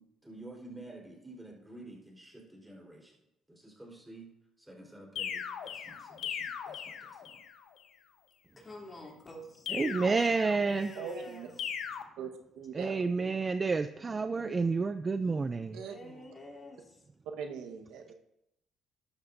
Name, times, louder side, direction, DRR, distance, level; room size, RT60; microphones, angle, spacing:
voice 1, 0.0-3.2 3.5-4.3 4.6-7.4, right 2 dB, 5° right, -1 dB, 4.2 m, -50 dB
sound 1, 5.2-7.6 9.7-11.0 11.6-12.0, left 8 dB, 70° left, 0.9 m, -39 dB
voice 2, 8.6-10.1 10.4-11.7 15.6-17.0, left 2 dB, 30° left, -1 dB, 3.1 m, -47 dB
voice 3, 9.7-10.9 12.7-15.7, right 4 dB, 25° right, 10 dB, 0.4 m, -29 dB
voice 4, 10.9-11.5 12.2-12.3 12.6-13.0 14.3-14.6 15.7-16.2 17.4-18.1, right 6 dB, 85° right, 3 dB, 1.3 m, -41 dB
13.0 x 11.5 x 2.7 m, 0.83 s
cardioid pair, 100°, 0 cm